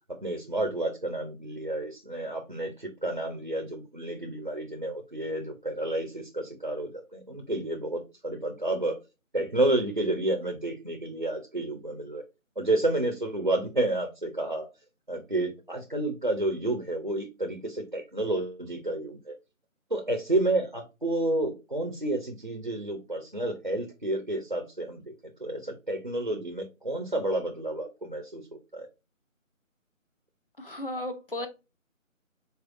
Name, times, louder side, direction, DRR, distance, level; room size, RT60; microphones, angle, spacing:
voice 1, 0.2-9.0 9.3-12.2 12.6-14.7 15.1-19.3 19.9-25.0 25.4-28.4 28.7-28.9, right 1 dB, 40° right, 0.5 m, -30 dB
voice 2, 30.6-31.5, left 1 dB, 40° left, 0.6 m, -34 dB
4.0 x 3.4 x 2.5 m
figure-of-eight pair, 170°, 41 cm